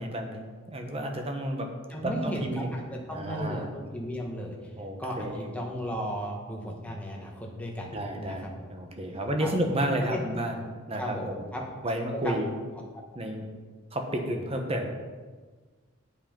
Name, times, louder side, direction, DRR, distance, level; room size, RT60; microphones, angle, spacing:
voice 1, 0.0-1.7 2.0-2.7 3.1-3.7 4.8-5.5 7.9-11.4 11.8-12.6 13.1-13.5 13.9-14.9, right 1 dB, 25° right, 4 dB, 1.1 m, -31 dB
voice 2, 1.9-4.6 5.0-7.9 8.2-8.6 9.4-9.5 10.0-10.2 11.0-11.7 12.1-12.3, equal, 5° left, -1 dB, 1.3 m, -35 dB
8.3 x 7.8 x 5.3 m, 1.4 s
head